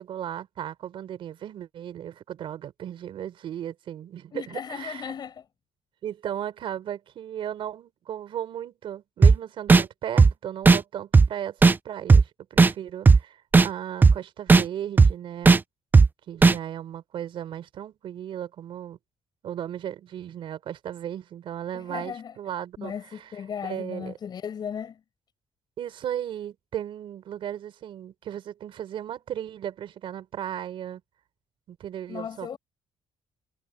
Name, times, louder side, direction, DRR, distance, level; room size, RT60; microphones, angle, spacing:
voice 1, 0.0-5.1 6.0-15.5 16.3-19.0 19.4-22.9 23.6-24.1 25.8-31.0 31.7-32.6, right 10 dB, 65° right, 3.9 m, -36 dB
voice 2, 4.3-5.5 21.7-22.4 22.8-25.0 32.1-32.6, left 7 dB, 45° left, 7.6 m, -36 dB
sound 1, 9.2-9.3 9.7-9.8 10.2-10.3 10.6-10.8 11.1-11.3 11.6-11.7 12.1-12.2 12.6-12.7 13.1-13.2 13.5-13.7 14.0-14.1 14.5-14.6 15.0-15.1 15.5-15.6 15.9-16.1 16.4-16.5, right 4 dB, 20° right, 0.5 m, -13 dB
cardioid pair, 135°, 10 cm